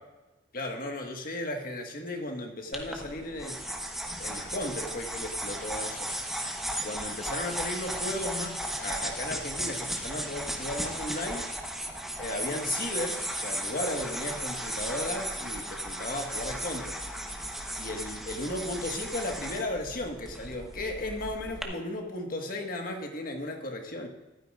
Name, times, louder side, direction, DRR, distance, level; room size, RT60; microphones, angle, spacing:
voice 1, 0.5-3.6 4.2-6.1 6.8-11.5 12.2-17.0 17.8-24.1, left 1 dB, 50° left, 3 dB, 1.7 m, -35 dB
sound 1, 2.7-21.6, right 1 dB, ahead, 1.1 m, -35 dB
14.5 x 12.5 x 2.5 m, 1.1 s
head